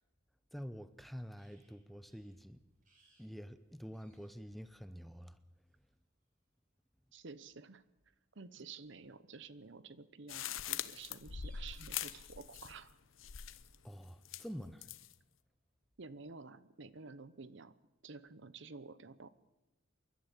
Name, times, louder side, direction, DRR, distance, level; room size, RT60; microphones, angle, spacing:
voice 1, 0.5-2.6 3.2-5.4 13.8-14.9, equal, ahead, 0.7 m, -47 dB
sound 1, 1.4-1.7 2.1-2.3 2.8-3.3 3.5-3.6 3.9-4.5 5.7-5.9 7.6-7.7 8.8-9.7 11.0-11.1 11.3-12.4 14.3-14.4 14.8-15.8, right 3 dB, 40° right, 7.4 m, -69 dB
voice 2, 7.1-7.8 8.3-12.9 16.0-17.8 18.0-19.3, right 4 dB, 60° right, 0.9 m, -51 dB
sound 2, 10.3-12.9 13.2-13.8 14.3-15.1, left 10 dB, 75° left, 0.8 m, -43 dB
28.0 x 12.0 x 8.3 m
head